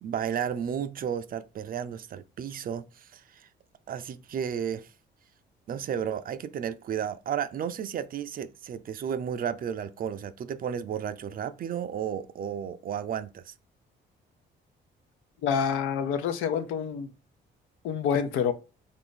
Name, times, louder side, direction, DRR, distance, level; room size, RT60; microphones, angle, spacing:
voice 1, 0.0-3.5 3.9-4.9 5.7-13.5, right 8 dB, 45° right, 0.4 m, -33 dB
voice 2, 15.4-17.1 17.8-18.5, left 7 dB, 90° left, 0.5 m, -27 dB
2.6 x 2.4 x 3.7 m
cardioid pair, 90°, 20 cm